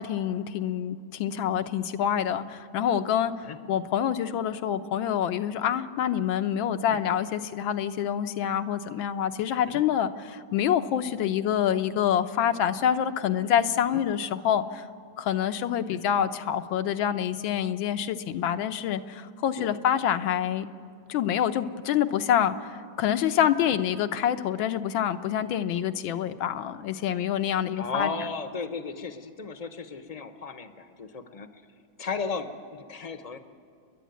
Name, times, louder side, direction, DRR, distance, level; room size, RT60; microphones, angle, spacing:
voice 1, 0.0-3.3 3.7-14.9 15.2-20.7 21.1-28.1, left 9 dB, 90° left, 8 dB, 1.6 m, -26 dB
voice 2, 27.8-31.5 32.0-33.4, left 4 dB, 45° left, 9 dB, 0.4 m, -35 dB
29.5 x 11.0 x 9.3 m, 2.3 s
omnidirectional pair, 2.1 m